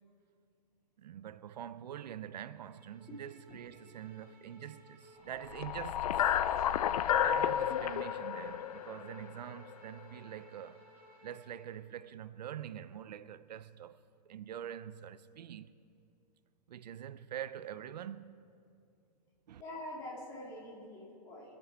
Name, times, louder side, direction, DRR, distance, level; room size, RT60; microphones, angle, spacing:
voice 1, 1.0-6.3 7.2-10.8 11.2-14.0 14.3-15.7 16.7-18.4 19.5-19.6, right 10 dB, 80° right, 0.6 m, -45 dB
Bowed string instrument, 2.6-11.7, right 1 dB, 10° right, 2.1 m, -59 dB
sound 1, 5.4-9.7, left 10 dB, 60° left, 0.5 m, -31 dB
voice 2, 6.5-7.2 19.6-21.6, left 1 dB, 15° left, 2.2 m, -47 dB
24.0 x 8.7 x 4.6 m
hypercardioid pair, 170°, 21 cm